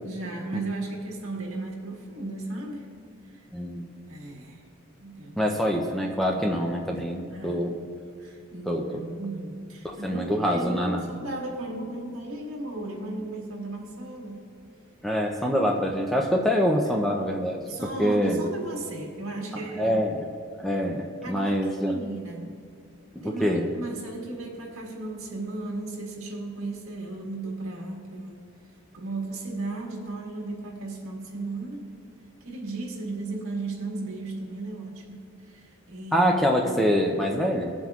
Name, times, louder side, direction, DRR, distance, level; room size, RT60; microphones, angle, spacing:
voice 1, 0.0-2.9 3.3-3.4 4.1-4.6 5.0-5.5 6.3-6.5 7.3-7.6 8.2-14.4 17.7-20.0 21.2-22.5 23.2-28.4 28.9-31.8 32.4-36.3, right 2 dB, 65° right, -1 dB, 1.8 m, -35 dB
voice 2, 3.5-3.8 5.4-7.8 8.7-9.0 9.8-11.1 15.0-17.6 18.0-18.4 19.7-20.3 20.6-22.0 23.1-23.7 36.1-37.7, equal, ahead, 1 dB, 0.5 m, -25 dB
22.0 x 7.6 x 2.4 m, 2.2 s
head